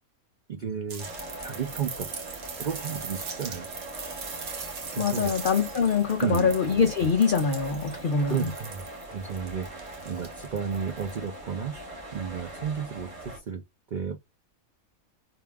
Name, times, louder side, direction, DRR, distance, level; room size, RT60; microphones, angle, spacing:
voice 1, 0.5-1.1 1.4-2.1 2.6-3.7 4.9-5.3 6.2-6.6 8.2-8.9 9.1-9.7 10.1-11.7 12.1-13.6 13.9-14.2, right 7 dB, 75° right, 0.4 m, -32 dB
sound 1, 0.9-11.3 12.7-12.8, right 5 dB, 60° right, 1.0 m, -41 dB
sound 2, 1.0-13.4, right 2 dB, 25° right, 0.9 m, -41 dB
voice 2, 5.0-8.5, left 5 dB, 85° left, 0.4 m, -24 dB
2.7 x 2.3 x 3.3 m
omnidirectional pair, 1.5 m